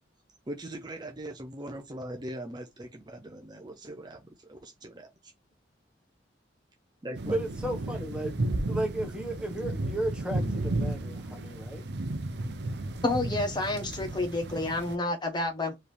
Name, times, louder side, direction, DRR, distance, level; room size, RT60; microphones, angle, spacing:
voice 1, 0.5-5.3 7.0-7.4, right 1 dB, 25° right, 0.7 m, -41 dB
sound 1, 7.1-15.0, right 2 dB, 65° right, 0.7 m, -33 dB
voice 2, 7.2-8.3 8.7-11.8, right 1 dB, 5° right, 1.4 m, -34 dB
voice 3, 13.0-15.8, left 2 dB, 25° left, 1.1 m, -29 dB
4.8 x 3.2 x 3.4 m
head